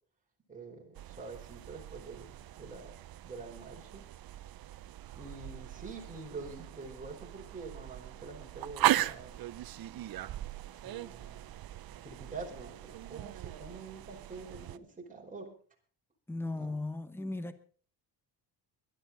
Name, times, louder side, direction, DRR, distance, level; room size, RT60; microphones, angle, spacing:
voice 1, 0.5-3.0 3.2-4.1 5.1-9.5 10.8-11.5 12.0-15.5 16.5-16.8, right 3 dB, 15° right, 4.6 m, -46 dB
sound 1, 0.9-14.8, right 14 dB, 55° right, 0.7 m, -38 dB
voice 2, 16.3-17.6, left 2 dB, 5° left, 1.0 m, -37 dB
21.0 x 12.0 x 4.0 m
cardioid pair, 130°, 45 cm